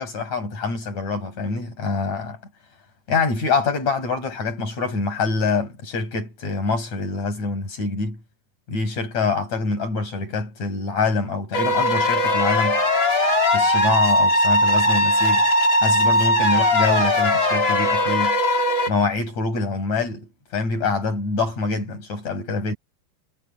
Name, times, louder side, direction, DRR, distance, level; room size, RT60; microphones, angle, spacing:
voice 1, 0.0-2.4 3.1-8.2 8.7-12.8 13.5-15.5 15.8-18.4 18.9-22.7, left 4 dB, 45° left, 9.4 m, -25 dB
sound 1, 11.5-18.9, left 1 dB, 30° left, 7.2 m, -19 dB
omnidirectional pair, 4.4 m